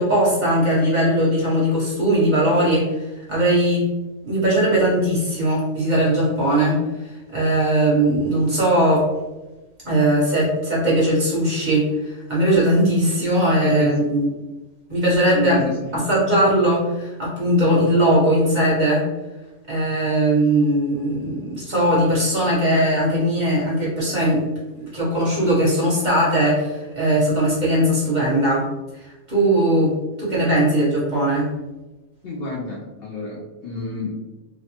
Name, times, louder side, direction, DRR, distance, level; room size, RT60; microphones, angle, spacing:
voice 1, 0.0-3.0 3.3-3.8 4.2-6.8 7.3-9.1 9.8-14.3 14.9-15.6 15.9-19.0 19.7-24.5 24.7-28.7 29.3-31.5, right 1 dB, 35° right, -7 dB, 0.9 m, -19 dB
voice 2, 13.6-14.1 15.4-16.1 32.2-34.2, left 1 dB, 70° left, -3 dB, 0.5 m, -28 dB
2.8 x 2.0 x 2.8 m, 1.1 s
omnidirectional pair, 1.5 m